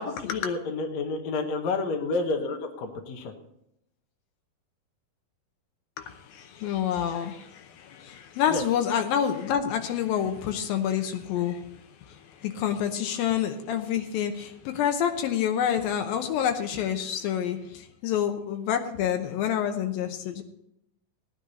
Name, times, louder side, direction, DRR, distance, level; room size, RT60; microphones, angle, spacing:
voice 1, 0.0-3.3 8.5-8.6, left 3 dB, 65° left, 3 dB, 2.0 m, -30 dB
voice 2, 6.0-20.4, left 9 dB, 80° left, 5 dB, 2.7 m, -28 dB
17.5 x 10.0 x 4.1 m, 0.79 s
omnidirectional pair, 4.1 m